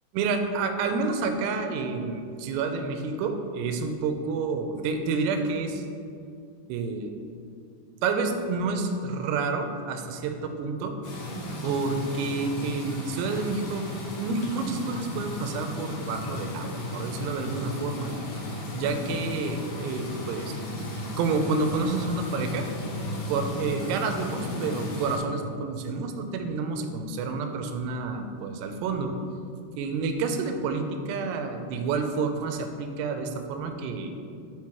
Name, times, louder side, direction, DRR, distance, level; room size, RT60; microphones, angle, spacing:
voice 1, 0.1-5.9 6.7-7.1 8.0-11.0 11.3-13.9 14.2-18.1 18.7-20.5 21.1-22.7 23.3-29.1 29.8-34.1, right 4 dB, 85° right, 6 dB, 2.7 m, -29 dB
sound 1, 11.0-25.2, left 2 dB, 60° left, 2.3 m, -35 dB
5.9 x 5.5 x 4.6 m, 2.4 s
omnidirectional pair, 5.0 m